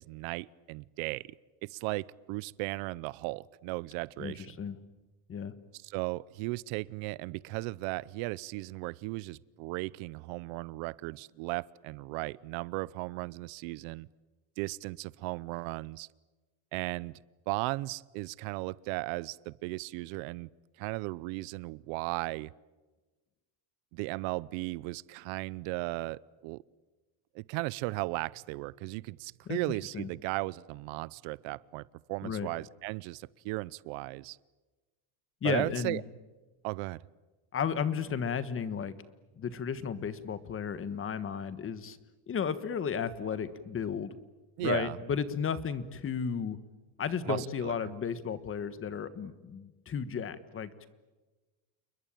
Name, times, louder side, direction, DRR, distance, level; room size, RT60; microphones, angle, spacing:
voice 1, 0.0-1.3 1.6-4.5 5.7-14.1 14.6-16.1 16.7-17.1 17.5-20.5 20.8-22.5 23.9-26.6 27.3-34.4 35.4-36.0 36.6-37.0 44.6-45.0 47.3-47.9, right 22 dB, 75° right, 22 dB, 0.8 m, -36 dB
voice 2, 4.2-4.8 5.3-5.5 29.5-29.6 29.9-30.1 32.2-32.5 35.4-36.0 37.5-38.9 39.4-42.0 42.3-44.1 44.6-46.6 47.0-50.9, left 7 dB, 25° left, 14 dB, 1.5 m, -33 dB
29.5 x 21.5 x 9.0 m, 1.2 s
cardioid pair, 150°, 47 cm